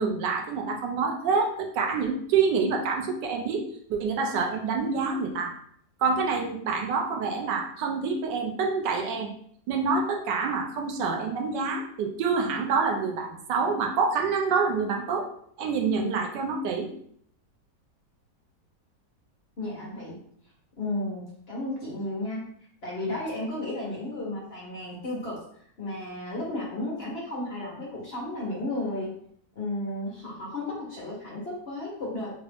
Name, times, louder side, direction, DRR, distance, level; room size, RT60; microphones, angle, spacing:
voice 1, 0.0-3.6 3.9-5.5 6.0-9.3 9.7-15.3 15.6-16.9, right 5 dB, 85° right, 2 dB, 1.3 m, -27 dB
voice 2, 19.6-20.2 20.8-22.4 22.8-25.4 25.8-29.1 29.5-32.3, left 1 dB, 45° left, -4 dB, 0.9 m, -33 dB
3.7 x 2.4 x 3.4 m, 0.64 s
omnidirectional pair, 1.8 m